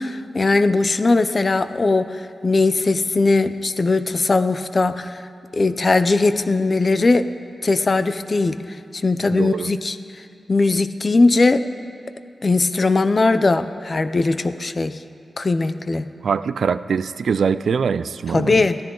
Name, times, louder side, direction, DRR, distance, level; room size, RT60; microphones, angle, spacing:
voice 1, 0.0-2.1 2.4-5.2 5.5-7.3 7.6-8.6 9.0-10.0 10.5-11.6 12.4-15.0 15.4-16.0 18.3-18.8, left 3 dB, 35° left, 11 dB, 0.5 m, -19 dB
voice 2, 9.3-9.7 16.2-18.7, right 6 dB, 85° right, 14 dB, 0.4 m, -23 dB
23.5 x 14.5 x 3.9 m, 2.4 s
wide cardioid pair, 145°, 0 cm